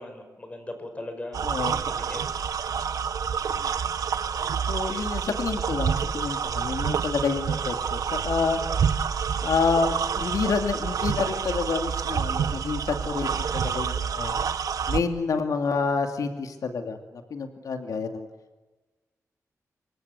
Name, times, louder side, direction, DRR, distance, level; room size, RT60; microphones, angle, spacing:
voice 1, 0.0-2.2, left 1 dB, 20° left, 7 dB, 5.5 m, -39 dB
sound 1, 1.3-15.0, right 7 dB, 90° right, 1.3 m, -28 dB
voice 2, 1.4-1.8 4.7-8.6 9.4-14.4 14.9-18.3, left 5 dB, 90° left, 6 dB, 2.4 m, -28 dB
27.0 x 24.0 x 8.2 m, 1.2 s
wide cardioid pair, 150°, 6 cm